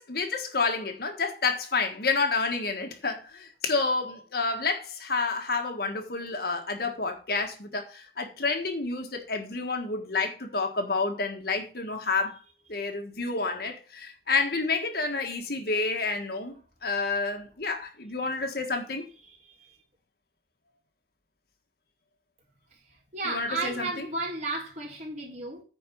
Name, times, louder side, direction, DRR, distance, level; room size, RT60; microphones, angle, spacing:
voice 1, 0.0-12.4 12.7-19.0 23.2-24.1, left 4 dB, 60° left, 1.6 m, -29 dB
voice 2, 19.3-19.8 23.1-25.6, right 2 dB, 45° right, 3.8 m, -34 dB
9.5 x 4.7 x 6.9 m
head